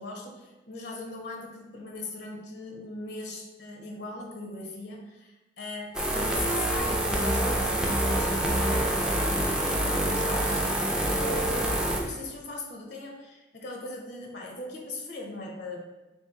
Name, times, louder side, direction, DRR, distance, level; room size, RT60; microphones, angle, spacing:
voice 1, 0.0-10.6 10.9-15.8, left 2 dB, 70° left, -1 dB, 0.7 m, -39 dB
sound 1, 5.9-12.0, right 1 dB, 5° right, 0.4 m, -26 dB
3.9 x 2.7 x 3.6 m, 1.1 s
head